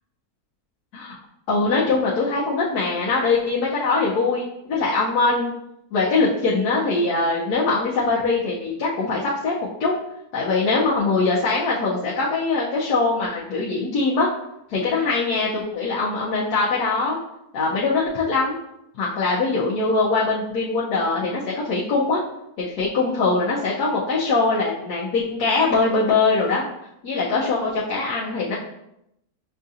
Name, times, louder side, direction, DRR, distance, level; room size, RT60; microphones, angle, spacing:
voice 1, 1.5-5.5 5.9-9.9 10.3-14.3 14.7-17.2 17.5-18.6 19.0-21.4 21.7-22.2 22.6-26.6 27.0-28.6, left 3 dB, 80° left, -6 dB, 1.2 m, -22 dB
6.5 x 2.4 x 2.6 m, 0.80 s
omnidirectional pair, 1.7 m